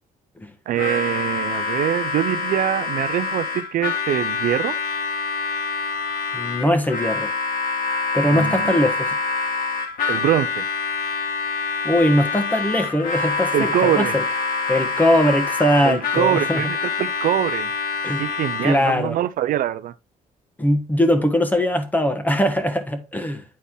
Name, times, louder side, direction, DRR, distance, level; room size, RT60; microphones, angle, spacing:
Harmonica, 0.7-19.0, left 4 dB, 80° left, 2.1 m, -26 dB
voice 1, 0.7-4.8 8.3-8.8 10.1-10.6 13.5-14.1 15.8-17.7 18.2-19.9, right 12 dB, 75° right, 0.6 m, -23 dB
voice 2, 6.3-7.3 8.1-9.2 11.8-14.2 14.7-16.7 18.0-18.2 18.6-19.2 20.6-23.4, left 1 dB, 10° left, 1.4 m, -20 dB
9.6 x 4.1 x 3.6 m
cardioid pair, 120°, 15 cm